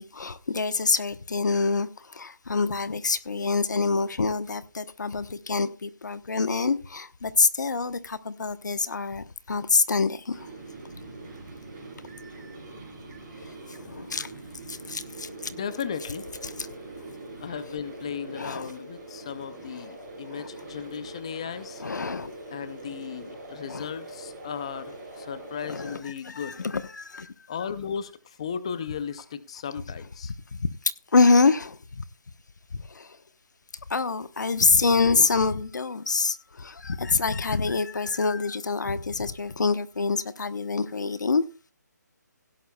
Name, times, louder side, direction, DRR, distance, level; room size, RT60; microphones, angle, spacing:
voice 1, 0.0-10.5 13.4-14.3 14.7-15.3 16.4-17.1 18.3-18.7 20.3-20.5 21.8-22.3 23.7-23.9 25.6-26.0 26.2-27.3 30.5-30.7 31.1-32.0 32.8-33.2 33.9-41.4, left 4 dB, 70° left, 1.0 m, -26 dB
sound 1, 10.3-26.0, right 2 dB, 20° right, 6.0 m, -43 dB
voice 2, 15.5-16.3 17.4-21.8 22.5-26.6 27.5-30.3, left 7 dB, 20° left, 0.5 m, -36 dB
16.5 x 11.5 x 2.3 m
hypercardioid pair, 175°, 10 cm